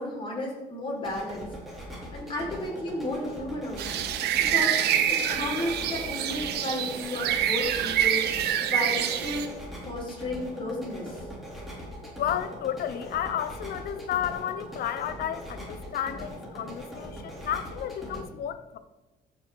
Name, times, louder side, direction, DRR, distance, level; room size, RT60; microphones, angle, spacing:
voice 1, 0.0-1.8 2.1-4.1 4.4-4.7 5.1-9.5 9.8-11.3, left 1 dB, 30° left, 4.7 m, -33 dB
sound 1, 0.9-18.2, equal, ahead, 4.0 m, -41 dB
sound 2, 3.8-9.5, right 10 dB, 75° right, 1.1 m, -26 dB
voice 2, 12.2-18.8, left 10 dB, 65° left, 0.8 m, -32 dB
14.5 x 6.4 x 5.1 m
cardioid pair, 110°, 17 cm